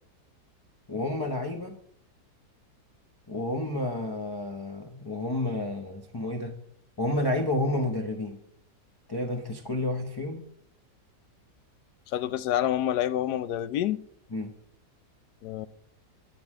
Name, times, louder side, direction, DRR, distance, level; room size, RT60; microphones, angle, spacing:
voice 1, 0.9-1.8 3.3-6.6 7.0-8.4 9.1-10.5 14.3-14.5, left 1 dB, 20° left, 0.6 m, -30 dB
voice 2, 12.1-14.0 15.4-15.7, left 11 dB, 80° left, 1.1 m, -27 dB
10.5 x 9.3 x 4.8 m
omnidirectional pair, 1.8 m